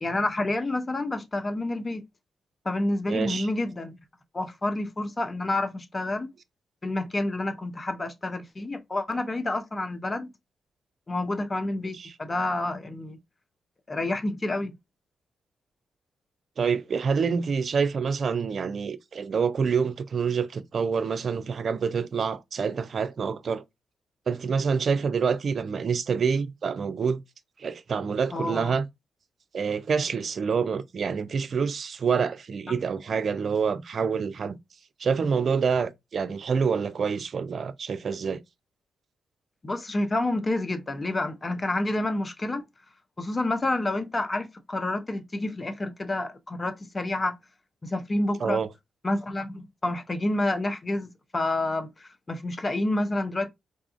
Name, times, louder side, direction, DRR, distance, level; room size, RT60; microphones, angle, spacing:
voice 1, 0.0-2.0 2.6-4.0 4.3-6.3 6.8-10.3 11.1-13.2 13.9-14.7 28.3-28.7 32.7-32.8 39.6-42.6 43.2-47.4 47.8-48.6 49.0-53.5, left 2 dB, 35° left, 0.7 m, -29 dB
voice 2, 3.1-3.5 12.0-12.1 16.6-23.6 24.3-27.2 27.6-28.8 29.5-34.6 35.0-38.4 48.4-48.7, right 6 dB, 55° right, 0.4 m, -27 dB
3.9 x 2.3 x 2.4 m
hypercardioid pair, 40°, 0 cm